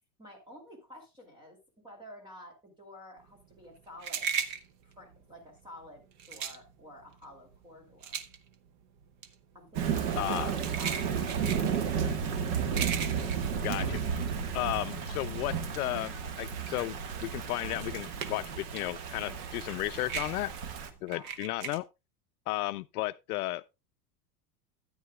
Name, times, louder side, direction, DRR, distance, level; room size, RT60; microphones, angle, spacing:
voice 1, 0.2-1.6 1.8-4.3 4.8-8.2 9.5-11.5 21.0-21.3, left 1 dB, 10° right, 2.6 m, -51 dB
sound 1, 3.3-14.9 15.2-18.7 18.9-21.8, right 6 dB, 30° right, 0.5 m, -38 dB
Thunder / Rain, 9.7-20.9, right 7 dB, 55° right, 1.6 m, -33 dB
voice 2, 10.2-10.5 13.6-14.0 14.5-20.5 21.0-21.8 22.5-23.6, left 18 dB, 70° left, 0.5 m, -34 dB
13.0 x 9.5 x 2.3 m
supercardioid pair, 175°, 47 cm